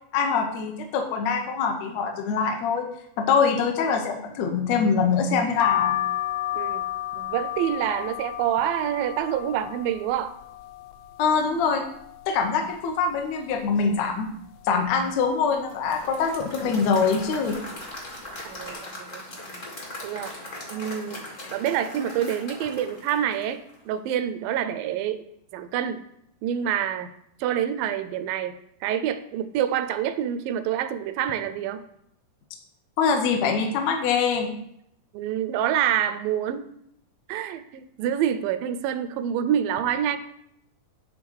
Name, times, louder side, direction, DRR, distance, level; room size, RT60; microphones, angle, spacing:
voice 1, 0.1-2.9 3.2-6.0 11.2-11.8 12.3-14.3 14.6-17.6 33.0-34.5, left 5 dB, 75° left, 2 dB, 1.6 m, -24 dB
sound 1, 5.6-11.3 11.7-12.5 12.9-13.0 13.2-14.3 14.8-15.1 15.9-16.2 17.0-17.3 17.5-17.7, left 13 dB, 90° left, 1.8 m, -31 dB
voice 2, 6.5-6.9 7.2-10.3 18.4-19.6 20.0-20.3 20.7-21.2 21.5-25.2 25.5-26.0 26.4-27.1 27.4-31.8 35.1-36.7 37.3-40.2, right 10 dB, 80° right, 10 dB, 2.2 m, -27 dB
Applause / Crowd, 15.7-23.9, left 1 dB, 45° left, 1.0 m, -39 dB
9.3 x 3.8 x 6.2 m, 0.74 s
omnidirectional pair, 4.2 m